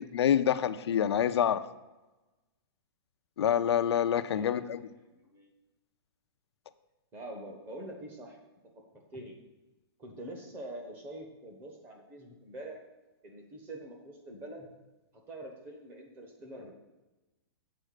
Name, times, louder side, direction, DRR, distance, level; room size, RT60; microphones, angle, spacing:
voice 1, 0.0-1.6 3.4-4.9, left 9 dB, 75° left, 10 dB, 0.5 m, -27 dB
voice 2, 4.3-4.6 5.1-5.5 7.1-8.4 9.1-9.4 10.0-12.8 13.2-14.7 15.3-16.7, right 1 dB, 15° right, 2 dB, 0.9 m, -45 dB
7.6 x 4.4 x 6.5 m, 1.1 s
hypercardioid pair, 175°, 14 cm